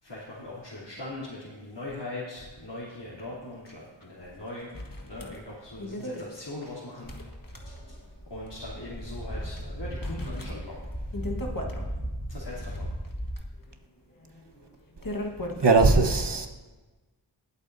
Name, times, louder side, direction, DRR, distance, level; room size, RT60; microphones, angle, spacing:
voice 1, 0.0-4.7 5.1-7.3 7.6-8.0 8.3-10.8 12.3-12.9, left 2 dB, 65° left, -8 dB, 3.0 m, -40 dB
sound 1, 3.7-3.8 4.0-4.1 4.7-8.1 8.5-8.6 9.2-9.6 10.0-11.9 12.4-15.7, left 1 dB, 45° left, 1.5 m, -39 dB
sound 2, 4.2-4.3 5.2-5.8 7.0-13.3, equal, 25° left, 3.0 m, -37 dB
voice 2, 15.6-16.5, right 3 dB, 65° right, 4 dB, 1.2 m, -19 dB
20.5 x 8.2 x 2.7 m, 1.2 s
wide cardioid pair, 40°, 45 cm